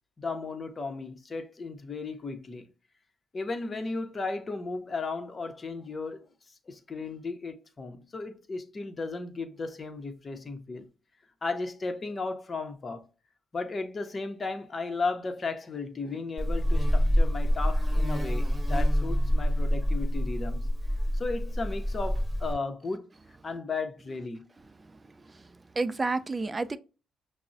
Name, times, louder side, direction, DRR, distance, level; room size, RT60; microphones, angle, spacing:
voice 1, 0.2-2.7 3.3-6.2 6.7-10.9 11.4-13.1 13.5-20.7 21.1-23.1 23.4-24.4, left 3 dB, 35° left, 0.7 m, -35 dB
Buzz, 16.4-22.5, equal, 5° right, 1.1 m, -26 dB
voice 2, 24.9-25.4 25.8-26.8, right 3 dB, 25° right, 0.3 m, -31 dB
5.9 x 2.0 x 2.6 m
cardioid pair, 90°, 0 cm